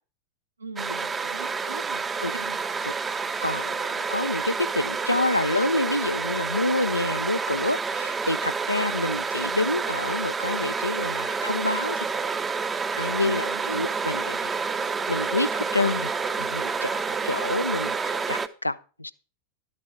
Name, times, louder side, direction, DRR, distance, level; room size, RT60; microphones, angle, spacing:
voice 1, 0.6-2.6 13.2-13.7, right 3 dB, 80° right, 1.0 m, -41 dB
sound 1, 0.8-18.5, right 5 dB, 15° right, 0.6 m, -29 dB
voice 2, 3.4-12.1 13.0-14.5 15.1-19.1, left 2 dB, 85° left, 0.4 m, -28 dB
11.5 x 7.5 x 4.7 m
figure-of-eight pair, 90°, 0 cm